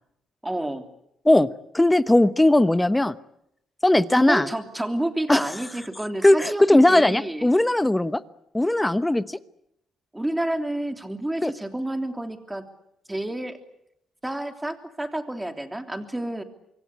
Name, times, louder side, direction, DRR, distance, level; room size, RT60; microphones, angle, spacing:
voice 1, 0.4-0.9 4.1-7.5 10.1-12.7 13.1-13.6 14.2-16.4, right 1 dB, 10° right, 6 dB, 3.1 m, -29 dB
voice 2, 1.7-3.1 3.8-4.5 5.3-5.4 6.2-8.2 8.5-9.4 11.4-11.5, left 1 dB, 10° left, 14 dB, 1.0 m, -18 dB
26.0 x 23.0 x 8.3 m, 0.78 s
cardioid pair, 90°, 0 cm